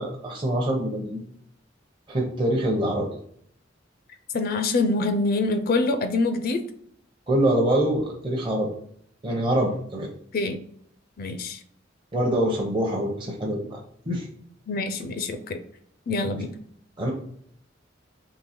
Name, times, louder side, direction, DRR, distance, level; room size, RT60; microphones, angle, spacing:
voice 1, 0.0-1.3 2.1-3.1 7.3-8.7 9.2-10.1 12.1-14.3 16.2-16.4 17.0-17.1, right 1 dB, 25° right, -2 dB, 0.7 m, -25 dB
voice 2, 4.3-6.6 10.3-10.6 11.2-11.6 14.7-15.6 16.1-16.5, left 3 dB, 50° left, 9 dB, 0.4 m, -25 dB
3.8 x 3.2 x 4.2 m, 0.64 s
head